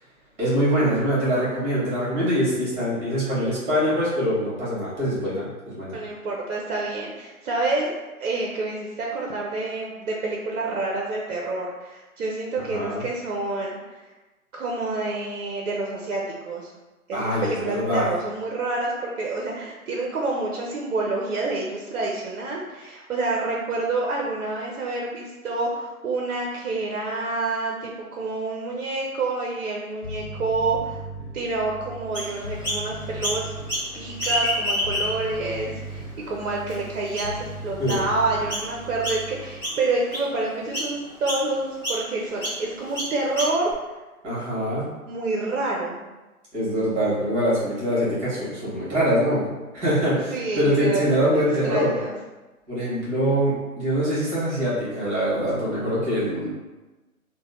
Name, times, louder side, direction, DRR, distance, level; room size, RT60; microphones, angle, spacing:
voice 1, 0.4-5.9 12.7-13.0 17.1-18.1 37.8-38.0 44.2-44.9 46.5-49.4 49.7-51.9 52.7-56.5, equal, 15° right, -8 dB, 1.3 m, -24 dB
voice 2, 5.9-7.9 8.2-13.8 14.5-16.7 17.1-31.0 31.3-33.4 33.9-43.7 45.1-46.0 50.3-52.1, right 3 dB, 60° right, -2 dB, 0.6 m, -28 dB
Bass guitar, 30.0-39.6, right 1 dB, 30° right, 1.0 m, -38 dB
Chirp tweet, 32.1-32.8 33.2-33.9 34.1-35.3 35.9-36.0 36.7-36.8 37.1-37.4 37.9-38.1 38.5-38.7 39.0-39.4 39.6-40.3 40.7-40.9 41.2-41.4 41.8-42.0 42.4-42.6 42.9-43.7, equal, 10° left, 1.3 m, -28 dB
3.3 x 2.1 x 2.4 m, 1.1 s
hypercardioid pair, 140°, 44 cm